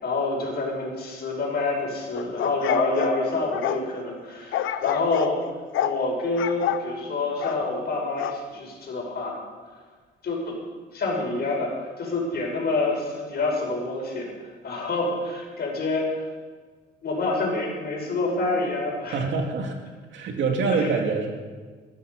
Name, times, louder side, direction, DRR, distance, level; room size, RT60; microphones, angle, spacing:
voice 1, 0.0-5.4 5.8-9.4 10.2-10.6 10.9-14.3 14.6-16.1 17.0-19.2 20.7-21.0, left 3 dB, 55° left, 0 dB, 5.6 m, -27 dB
sound 1, 2.2-3.8 4.5-5.4 5.7-6.0 6.4-6.8 7.4-7.6 8.2-8.4, left 11 dB, 85° left, 0.9 m, -28 dB
voice 2, 19.1-19.7 20.1-21.3, right 4 dB, 70° right, 2 dB, 2.6 m, -25 dB
19.0 x 12.0 x 5.4 m, 1.5 s
cardioid pair, 90°, 20 cm